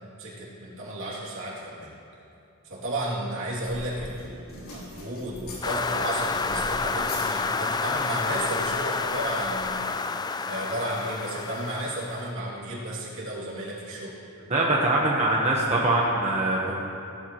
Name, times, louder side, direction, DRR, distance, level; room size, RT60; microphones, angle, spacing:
voice 1, 0.2-1.9 2.7-10.0 10.4-14.1, right 1 dB, 65° right, -5 dB, 2.7 m, -33 dB
sound 1, 3.5-9.7, left 1 dB, 75° left, 3.3 m, -43 dB
sound 2, 5.6-12.3, left 4 dB, 20° left, 0.3 m, -29 dB
voice 2, 14.5-16.8, right 2 dB, 30° right, -4 dB, 1.1 m, -23 dB
17.0 x 12.5 x 3.1 m, 2.7 s
head